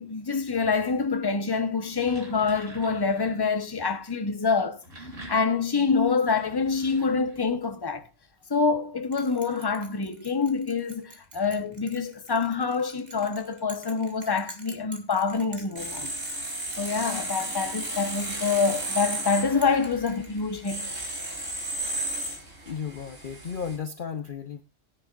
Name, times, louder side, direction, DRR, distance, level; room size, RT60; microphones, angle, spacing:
voice 1, 0.0-4.8 5.3-8.0 8.5-16.1 16.8-20.9, left 5 dB, 20° left, 0.9 m, -26 dB
sound 1, 1.7-3.4 4.6-7.6, right 1 dB, 70° right, 3.6 m, -46 dB
Bell, 9.1-20.8, right 2 dB, 35° right, 1.9 m, -48 dB
sound 2, 15.8-23.8, right 2 dB, 55° right, 3.9 m, -34 dB
voice 2, 22.6-24.6, left 6 dB, 50° left, 0.8 m, -34 dB
19.0 x 9.7 x 2.5 m
omnidirectional pair, 1.3 m